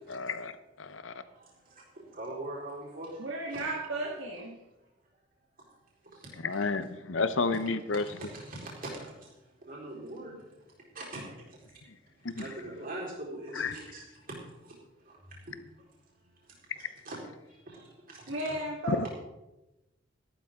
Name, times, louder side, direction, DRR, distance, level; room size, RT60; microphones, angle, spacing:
voice 1, 0.1-0.5 0.8-1.1 6.4-8.0 12.3-12.4 13.6-13.8 18.9-19.1, left 4 dB, 90° left, 13 dB, 0.8 m, -30 dB
voice 2, 2.1-3.2 3.5-3.8 6.5-6.6 7.5-8.9 9.6-10.4 10.9-11.2 12.4-14.0 16.8-17.2 17.7-17.8 18.1-18.2, right 2 dB, 50° right, -4 dB, 4.3 m, -41 dB
voice 3, 3.2-4.6 18.3-19.1, right 1 dB, 75° right, -2 dB, 1.9 m, -34 dB
13.5 x 12.0 x 3.7 m, 0.99 s
head